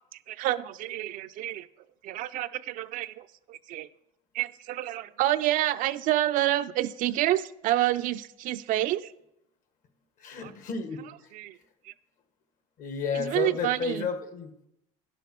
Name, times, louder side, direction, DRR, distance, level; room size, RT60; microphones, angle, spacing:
voice 1, 0.0-1.7 2.0-3.9 4.3-9.1 10.4-10.5 11.3-11.6 11.8-11.9 13.1-14.1, right 14 dB, 60° right, 12 dB, 0.5 m, -28 dB
voice 2, 10.2-11.3 12.8-14.7, left 6 dB, 55° left, 7 dB, 1.6 m, -32 dB
9.6 x 6.9 x 6.0 m, 0.83 s
supercardioid pair, 105°, 16 cm